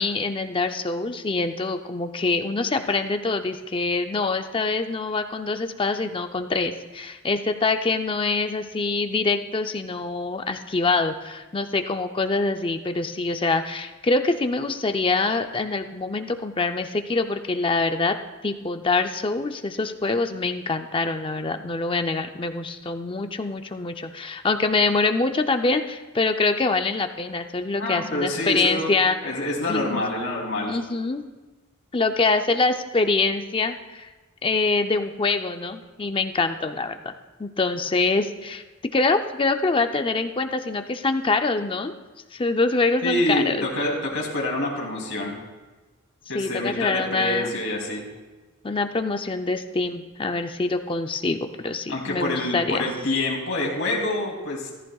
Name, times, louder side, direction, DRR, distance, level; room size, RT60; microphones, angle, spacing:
voice 1, 0.0-18.1 18.4-30.0 30.7-31.2 31.9-34.1 34.4-37.1 37.4-38.6 38.9-41.9 42.3-43.7 46.3-47.6 48.6-52.9, left 3 dB, 25° left, 7 dB, 0.5 m, -25 dB
voice 2, 27.8-28.9 29.2-30.8 43.0-45.4 46.3-48.0 51.9-54.7, left 1 dB, 65° left, -1 dB, 2.9 m, -26 dB
14.0 x 14.0 x 2.4 m, 1.2 s
head